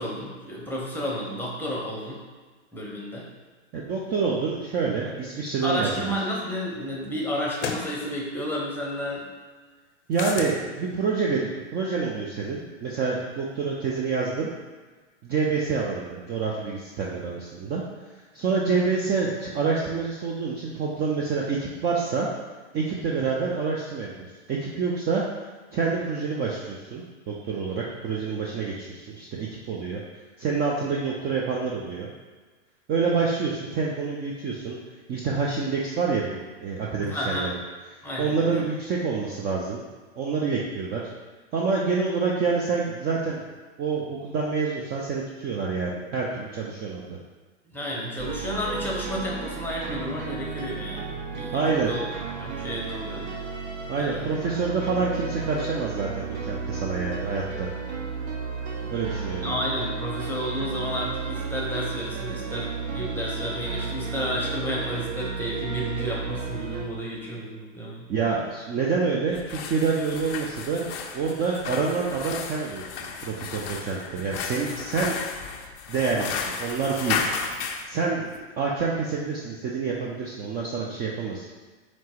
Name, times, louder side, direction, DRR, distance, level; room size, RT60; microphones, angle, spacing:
voice 1, 0.0-2.2 2.7-3.3 5.6-9.3 37.0-37.5 38.0-38.6 47.7-51.6 51.9-52.0 52.4-53.3 54.0-54.3 54.8-54.9 58.7-58.9 59.4-68.1, equal, 5° left, -4 dB, 0.8 m, -31 dB
voice 2, 3.7-5.9 10.1-14.5 15.2-17.8 18.3-22.3 22.7-24.1 24.5-25.2 25.7-30.0 30.4-32.1 32.9-34.8 35.1-37.6 37.9-39.8 40.2-41.0 41.5-43.5 43.8-47.2 51.5-51.9 53.9-57.7 58.9-59.5 68.1-70.9 71.1-72.8 73.2-75.2 75.9-77.2 77.9-78.3 78.6-81.5, right 5 dB, 25° right, -3 dB, 0.5 m, -27 dB
sound 1, 6.2-6.3 7.6-7.9 10.1-10.6, left 5 dB, 80° left, 0.6 m, -31 dB
sound 2, 48.2-66.9, right 5 dB, 65° right, 0.8 m, -33 dB
sound 3, 69.3-77.9, left 6 dB, 35° left, 0.4 m, -33 dB
4.4 x 2.0 x 4.3 m, 1.4 s
hypercardioid pair, 100°, 37 cm